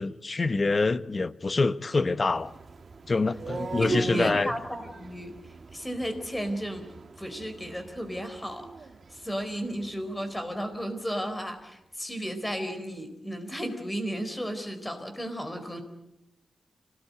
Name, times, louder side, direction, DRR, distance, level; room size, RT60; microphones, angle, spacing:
voice 1, 0.0-2.5 3.1-4.5, left 3 dB, 35° left, 0.9 m, -26 dB
sound 1, 2.3-10.3, right 4 dB, 50° right, 1.8 m, -38 dB
voice 2, 3.8-6.9 7.2-15.8, equal, 10° left, 4.0 m, -34 dB
26.5 x 18.0 x 9.6 m
wide cardioid pair, 125°, 0 cm